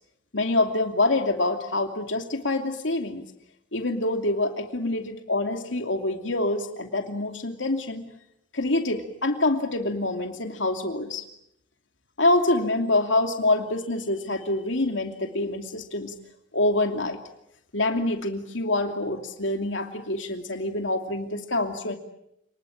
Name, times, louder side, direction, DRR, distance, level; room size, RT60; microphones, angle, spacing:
voice 1, 0.3-3.2 3.7-8.1 8.5-11.2 12.2-16.1 16.5-17.2 17.7-22.0, left 2 dB, 80° left, 4 dB, 2.7 m, -26 dB
29.5 x 20.5 x 8.8 m, 0.79 s
head